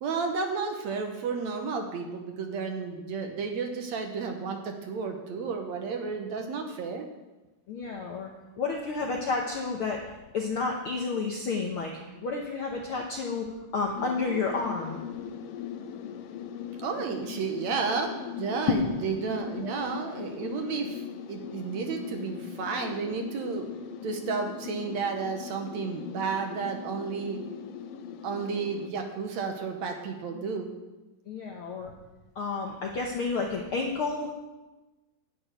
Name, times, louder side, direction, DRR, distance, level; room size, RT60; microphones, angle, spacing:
voice 1, 0.0-7.1 16.8-21.0 21.3-23.7 24.0-27.4 28.2-30.7, right 5 dB, 65° right, 4 dB, 2.1 m, -32 dB
voice 2, 7.7-8.3 8.6-10.0 10.3-11.9 12.2-13.5 13.7-15.0 18.7-18.8 31.3-31.9 32.3-34.3, left 4 dB, 65° left, 0 dB, 1.3 m, -30 dB
sound 1, 14.0-28.9, left 8 dB, 85° left, 2.3 m, -40 dB
11.0 x 6.3 x 9.1 m, 1.1 s
omnidirectional pair, 3.8 m